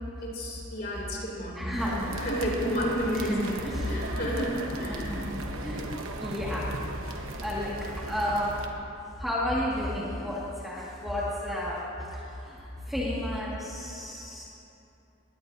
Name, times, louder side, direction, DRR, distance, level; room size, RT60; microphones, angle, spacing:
voice 1, 0.2-1.7 2.1-5.3, equal, 45° left, -3 dB, 3.2 m, -31 dB
voice 2, 1.6-2.1 3.1-3.9 4.9-5.8 6.2-6.8 7.4-8.5 9.2-12.1 12.4-14.4, left 1 dB, ahead, -8 dB, 2.0 m, -32 dB
sound 1, 1.8-8.7, right 2 dB, 70° right, 1.1 m, -37 dB
20.5 x 17.0 x 2.8 m, 2.8 s
head